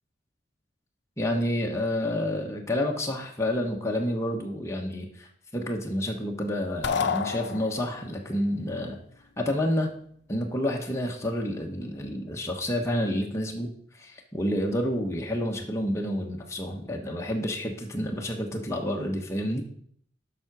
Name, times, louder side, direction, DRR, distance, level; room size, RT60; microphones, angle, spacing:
voice 1, 1.2-9.0 9.4-9.9 10.3-13.7 13.9-19.6, left 1 dB, 15° left, 0 dB, 1.1 m, -29 dB
sound 1, 6.8-8.1, left 6 dB, 65° left, 0.7 m, -29 dB
7.5 x 5.8 x 6.0 m, 0.63 s
head